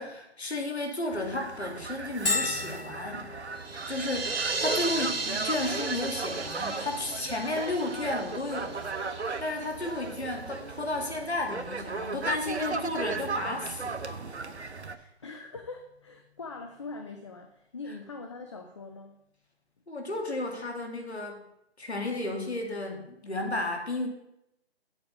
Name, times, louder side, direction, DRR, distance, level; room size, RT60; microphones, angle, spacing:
voice 1, 0.0-3.3 3.9-8.9 9.4-14.2 19.9-21.4 21.8-24.1, left 2 dB, 80° left, 2 dB, 2.7 m, -33 dB
sound 1, 1.1-15.0, right 4 dB, 90° right, 0.9 m, -37 dB
Bell, 2.3-17.7, left 3 dB, 60° left, 1.3 m, -41 dB
sound 2, 3.6-9.2, right 3 dB, 65° right, 1.4 m, -35 dB
voice 2, 15.2-19.2, left 3 dB, 30° left, 5 dB, 0.6 m, -42 dB
9.0 x 8.0 x 5.2 m, 0.81 s
figure-of-eight pair, 150°, 33 cm